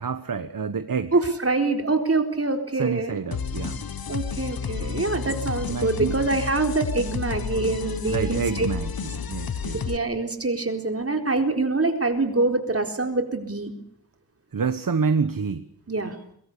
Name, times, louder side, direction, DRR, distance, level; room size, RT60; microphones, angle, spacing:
voice 1, 0.0-1.2 2.8-3.8 5.3-5.4 5.7-6.2 8.1-9.8 14.5-15.6, right 5 dB, 60° right, 11 dB, 1.3 m, -27 dB
voice 2, 1.1-3.2 4.1-8.7 9.7-13.7 15.9-16.2, right 3 dB, 35° right, 4 dB, 4.1 m, -25 dB
sound 1, 3.3-10.0, left 7 dB, 65° left, 1.1 m, -31 dB
23.5 x 22.5 x 8.5 m, 0.67 s
wide cardioid pair, 110°, 38 cm